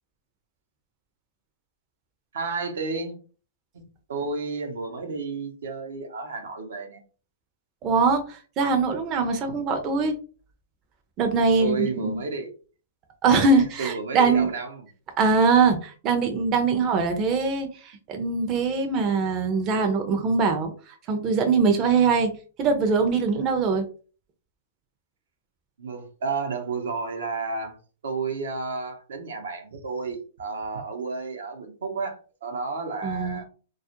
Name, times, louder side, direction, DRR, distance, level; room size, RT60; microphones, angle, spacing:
voice 1, 2.3-3.2 3.7-3.8 4.1-7.0 11.6-12.5 13.8-14.9 25.8-27.8 28.0-33.4, right 4 dB, 80° right, 0.7 m, -31 dB
voice 2, 7.8-10.1 11.2-12.2 13.2-14.5 15.2-20.7 21.1-22.3 22.6-23.8 33.0-33.4, right 4 dB, 35° right, 0.5 m, -22 dB
2.3 x 2.1 x 2.8 m
hypercardioid pair, 125°, 0 cm